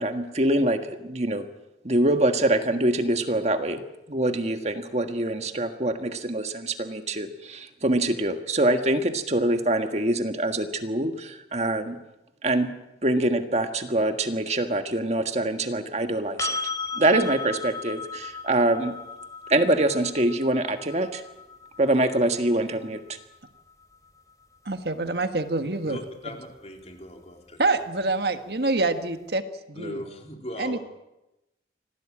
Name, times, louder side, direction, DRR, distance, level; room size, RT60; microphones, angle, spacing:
voice 1, 0.0-1.5 1.8-3.8 4.1-12.0 12.4-12.7 13.0-16.6 16.9-19.0 19.5-21.2 21.8-23.0, right 1 dB, 40° right, 6 dB, 1.7 m, -24 dB
sound 1, 16.4-24.2 27.0-27.1, left 4 dB, 20° left, 4.0 m, -36 dB
voice 2, 24.6-26.0 27.6-29.4 29.7-30.0 30.6-30.8, right 3 dB, 65° right, 8 dB, 1.6 m, -26 dB
voice 3, 25.8-27.6 29.7-30.8, left 1 dB, 40° left, 2 dB, 4.0 m, -39 dB
26.5 x 18.0 x 8.8 m, 0.96 s
head